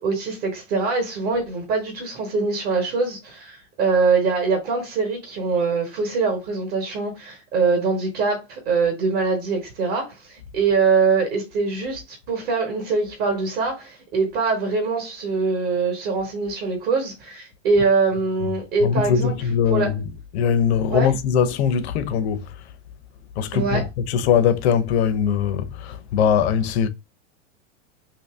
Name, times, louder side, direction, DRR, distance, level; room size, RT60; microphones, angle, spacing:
voice 1, 0.0-19.9 20.9-21.1 23.5-23.8, right 4 dB, 35° right, 1.1 m, -23 dB
voice 2, 18.8-20.0 20.3-22.4 23.4-26.9, left 7 dB, 60° left, 0.7 m, -21 dB
2.8 x 2.7 x 3.4 m
supercardioid pair, 160°, 36 cm